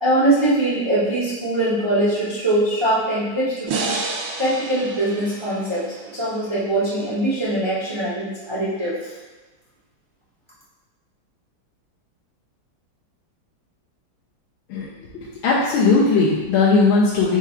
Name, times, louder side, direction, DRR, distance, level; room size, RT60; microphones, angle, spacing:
voice 1, 0.0-9.0, right 1 dB, 50° right, -9 dB, 0.3 m, -22 dB
sound 1, 3.7-6.9, right 3 dB, 80° right, 1.4 m, -30 dB
voice 2, 15.1-17.4, left 4 dB, 90° left, -6 dB, 1.5 m, -18 dB
4.7 x 2.4 x 4.4 m, 1.2 s
omnidirectional pair, 2.2 m